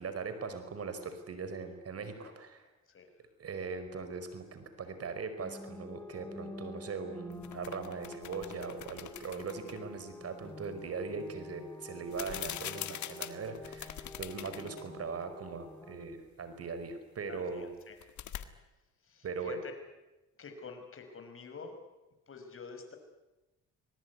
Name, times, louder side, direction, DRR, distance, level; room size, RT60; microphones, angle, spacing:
voice 1, 0.0-2.6 3.4-17.7 19.2-19.6, right 4 dB, 50° right, 9 dB, 4.9 m, -40 dB
sound 1, 5.4-16.1, left 2 dB, 10° left, 2.5 m, -49 dB
sound 2, 7.3-9.8 12.1-14.9 15.2-15.3 17.8-18.4, left 11 dB, 70° left, 1.8 m, -43 dB
voice 2, 17.3-18.0 19.0-19.7 20.4-21.8 22.3-23.0, left 5 dB, 45° left, 6 dB, 5.7 m, -48 dB
26.0 x 19.5 x 9.6 m, 1.0 s
cardioid pair, 90°, 30 cm